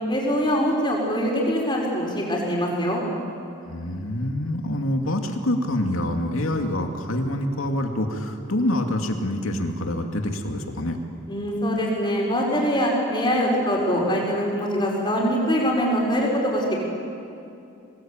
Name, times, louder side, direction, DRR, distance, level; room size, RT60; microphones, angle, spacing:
voice 1, 0.1-3.0 11.3-16.6, equal, 20° left, -2 dB, 5.2 m, -23 dB
voice 2, 3.7-11.0, left 1 dB, 80° left, 4 dB, 2.5 m, -26 dB
25.0 x 19.0 x 8.9 m, 2.6 s
head